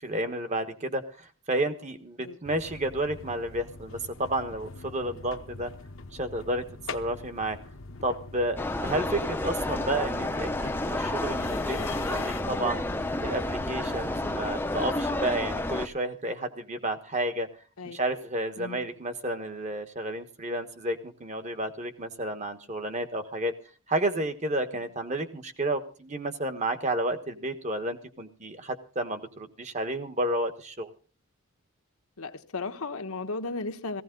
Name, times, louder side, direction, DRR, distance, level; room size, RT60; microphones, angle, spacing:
voice 1, 0.0-5.7 6.1-6.6 6.9-7.6 8.0-12.8 13.2-17.5 17.8-23.5 23.9-30.9, right 1 dB, 30° right, 1.3 m, -31 dB
sound 1, 2.4-14.4, left 3 dB, 60° left, 0.9 m, -43 dB
sound 2, 8.6-15.9, left 2 dB, 10° left, 0.7 m, -30 dB
voice 2, 32.2-34.0, left 3 dB, 85° left, 1.2 m, -35 dB
17.0 x 15.5 x 3.8 m
head